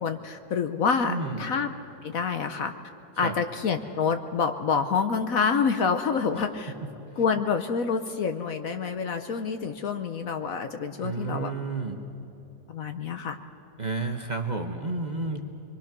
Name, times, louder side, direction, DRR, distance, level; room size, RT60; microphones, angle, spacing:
voice 1, 0.0-1.7 2.0-2.7 3.2-6.7 7.2-11.5 12.7-13.4, left 5 dB, 60° left, 8 dB, 1.1 m, -27 dB
voice 2, 1.1-1.5 3.2-3.4 11.0-12.0 13.8-15.4, right 3 dB, 30° right, 3 dB, 1.0 m, -31 dB
25.5 x 23.0 x 6.0 m, 2.9 s
omnidirectional pair, 1.9 m